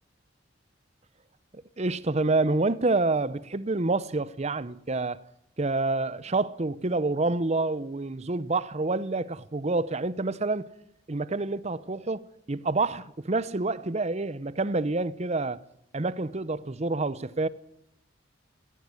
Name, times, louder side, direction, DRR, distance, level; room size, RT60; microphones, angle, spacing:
voice 1, 1.5-5.2 5.6-10.7 11.1-15.6 15.9-17.5, right 3 dB, 35° right, 0.8 m, -28 dB
17.5 x 17.0 x 9.8 m
head